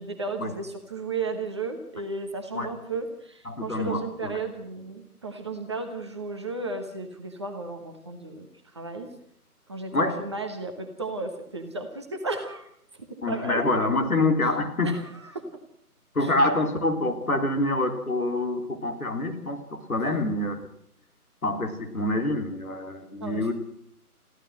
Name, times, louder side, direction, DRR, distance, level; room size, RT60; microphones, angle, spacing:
voice 1, 0.0-8.5 8.7-9.1 9.7-12.7 13.0-13.6 14.8-15.5 16.2-16.3 20.0-20.2 23.2-23.5, right 3 dB, 20° right, 4 dB, 1.2 m, -34 dB
voice 2, 3.5-4.4 9.9-10.2 13.2-15.0 16.1-20.6 21.4-23.5, left 2 dB, 65° left, 4 dB, 3.8 m, -26 dB
22.5 x 15.0 x 7.7 m, 0.72 s
figure-of-eight pair, 155°, 46 cm